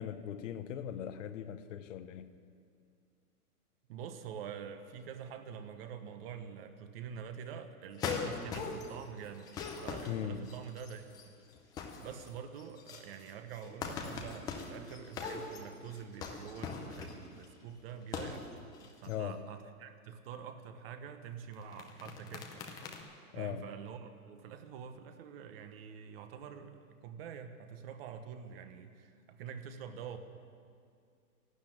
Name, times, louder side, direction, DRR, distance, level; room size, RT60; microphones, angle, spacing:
voice 1, 0.0-2.2 10.1-10.5 19.1-19.5 23.3-23.6, left 10 dB, 55° left, 0.9 m, -39 dB
voice 2, 3.9-9.5 9.8-11.3 12.0-18.5 19.0-22.7 23.3-30.2, right 7 dB, 40° right, 1.1 m, -46 dB
sound 1, 8.0-9.0 9.4-11.2 11.6-12.3 12.6-17.4 18.0-18.5 18.7-19.1 21.5-23.0, left 5 dB, 10° left, 0.5 m, -41 dB
12.5 x 12.0 x 8.9 m
hypercardioid pair, 150°, 45 cm